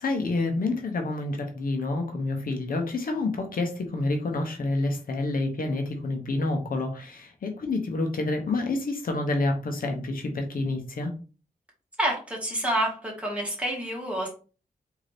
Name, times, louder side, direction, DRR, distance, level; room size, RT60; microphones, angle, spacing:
voice 1, 0.0-11.1, left 2 dB, 70° left, 4 dB, 0.8 m, -28 dB
voice 2, 12.0-14.3, right 1 dB, 10° right, -2 dB, 1.8 m, -28 dB
3.8 x 2.8 x 3.3 m, 0.36 s
wide cardioid pair, 85°, 15 cm